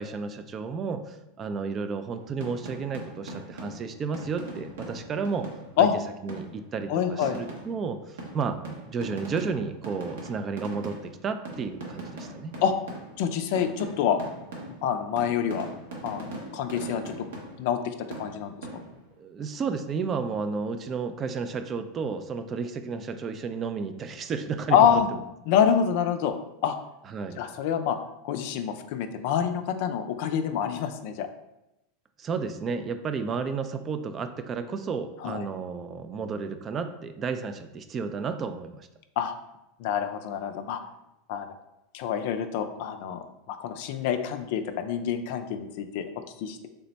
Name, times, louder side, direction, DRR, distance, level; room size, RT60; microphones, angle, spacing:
voice 1, 0.0-5.5 5.8-5.9 6.2-8.6 8.9-12.5 19.2-25.2 27.1-27.4 32.2-38.9, right 5 dB, 35° right, 9 dB, 0.3 m, -32 dB
sound 1, 2.2-5.9 6.3-6.7 7.2-13.3 13.6-17.8 18.1-19.1, right 2 dB, 85° right, 0.8 m, -41 dB
voice 2, 6.9-7.4 12.6-12.7 13.2-14.2 14.8-15.7 16.0-17.3 17.6-18.8 24.7-25.1 25.5-26.3 26.6-26.7 27.4-28.0 28.2-31.3 35.2-35.5 39.2-39.3 39.8-40.8 41.3-41.5 41.9-43.2 43.5-46.0 46.4-46.7, left 8 dB, 65° left, 8 dB, 0.3 m, -26 dB
3.3 x 2.1 x 3.9 m, 0.90 s
hypercardioid pair, 105°, 0 cm